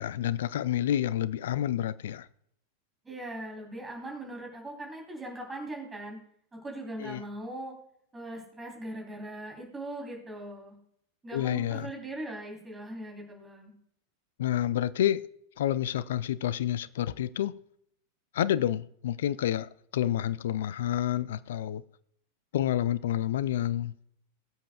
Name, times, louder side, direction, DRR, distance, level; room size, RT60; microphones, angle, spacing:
voice 1, 0.0-2.3 7.0-7.2 11.3-11.9 14.4-15.2 15.6-17.6 18.3-21.8 22.5-23.9, left 11 dB, 60° left, 0.4 m, -29 dB
voice 2, 3.0-6.2 6.5-7.7 8.1-10.8 11.2-13.7, right 1 dB, 15° right, 3.4 m, -40 dB
21.5 x 7.5 x 2.3 m
figure-of-eight pair, 90°, 0 cm